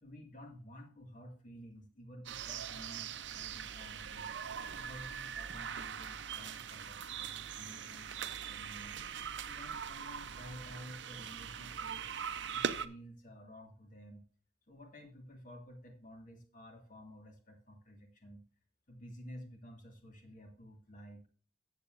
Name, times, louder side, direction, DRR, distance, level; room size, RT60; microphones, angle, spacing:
voice 1, 0.0-4.3 4.8-9.0 9.4-12.1 12.5-14.2 14.7-18.4 18.9-21.3, equal, 45° left, 3 dB, 2.1 m, -52 dB
sound 1, 2.3-12.9, right 7 dB, 70° right, 0.6 m, -41 dB
13.5 x 8.3 x 2.6 m, 0.42 s
head